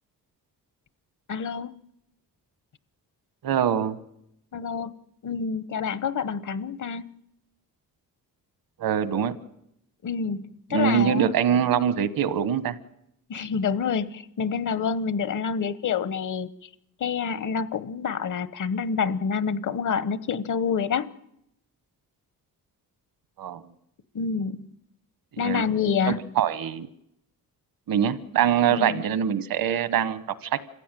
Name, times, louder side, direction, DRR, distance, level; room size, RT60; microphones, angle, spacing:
voice 1, 1.3-1.7 4.5-4.9 5.2-7.0 10.0-10.4 10.7-11.3 13.3-16.5 17.0-21.1 24.1-24.7 25.4-26.2 28.7-29.0, left 6 dB, 55° left, 16 dB, 1.0 m, -27 dB
voice 2, 3.4-4.0 8.8-9.3 10.7-12.8 23.4-23.6 25.3-25.7 26.0-26.9 27.9-30.6, right 9 dB, 75° right, 14 dB, 1.3 m, -24 dB
26.0 x 15.5 x 9.1 m, 0.79 s
cardioid pair, 120°, 35 cm